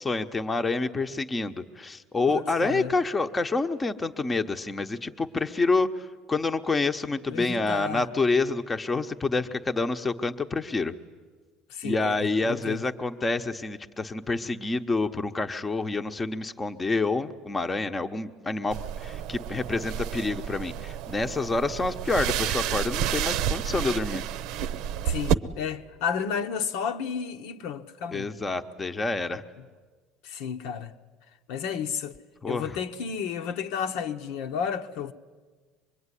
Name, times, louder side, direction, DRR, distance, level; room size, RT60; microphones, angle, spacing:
voice 1, 0.0-10.9 11.8-24.2 28.1-29.4 32.4-32.8, left 3 dB, 15° left, 0.9 m, -28 dB
voice 2, 2.3-2.9 7.3-8.1 11.7-12.8 25.0-28.3 30.2-30.9 31.5-32.2 32.5-35.1, left 7 dB, 75° left, 1.2 m, -32 dB
sound 1, 18.7-25.3, right 10 dB, 65° right, 0.8 m, -30 dB
25.0 x 22.0 x 9.9 m
cardioid pair, 130°, 0 cm